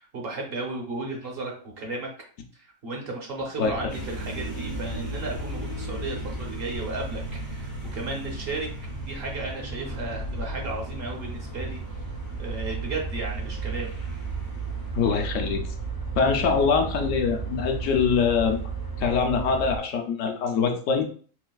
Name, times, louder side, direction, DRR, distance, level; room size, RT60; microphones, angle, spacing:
voice 1, 0.0-2.1 2.6-8.7 9.1-11.8 12.4-13.9, right 2 dB, 55° right, 0 dB, 0.8 m, -34 dB
sound 1, 3.6-19.8, right 4 dB, 35° left, 0.3 m, -35 dB
sound 2, 3.9-15.6, equal, 85° right, 2.1 m, -39 dB
voice 2, 14.9-15.6 16.2-18.6 19.0-21.0, left 5 dB, 75° left, 3 dB, 0.9 m, -23 dB
3.9 x 2.4 x 2.3 m, 0.43 s
omnidirectional pair, 1.4 m